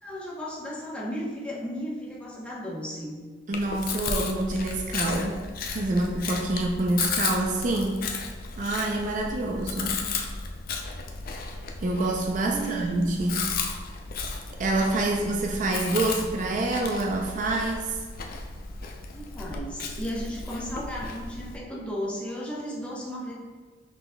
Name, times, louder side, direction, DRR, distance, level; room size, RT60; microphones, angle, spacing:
voice 1, 0.0-3.2 12.4-13.1 19.1-23.3, equal, 5° left, -6 dB, 0.9 m, -35 dB
Chewing mastication, 3.5-21.6, left 4 dB, 50° left, 0.4 m, -34 dB
voice 2, 3.5-5.4 5.7-8.1 8.6-10.0 11.8-13.4 14.6-18.0, right 2 dB, 45° right, 0 dB, 0.4 m, -27 dB
5.9 x 4.0 x 2.2 m, 1.4 s
head